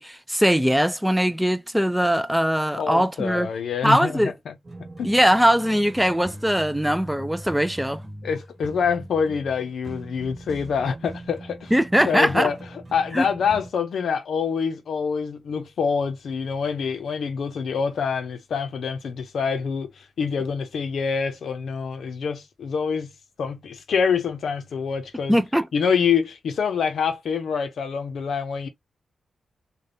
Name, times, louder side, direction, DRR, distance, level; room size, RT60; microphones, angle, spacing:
voice 1, 0.0-3.5 3.8-4.3 5.0-8.0 11.7-12.5 13.1-13.3 25.3-25.7, equal, 5° right, 0.3 m, -21 dB
voice 2, 2.7-4.6 5.0-5.1 8.2-11.7 12.1-12.6 12.9-23.1 23.4-25.4 25.7-28.7, left 6 dB, 70° left, 0.6 m, -26 dB
sound 1, 4.6-13.7, right 1 dB, 30° right, 1.3 m, -41 dB
3.4 x 2.2 x 2.6 m
wide cardioid pair, 145°, 0 cm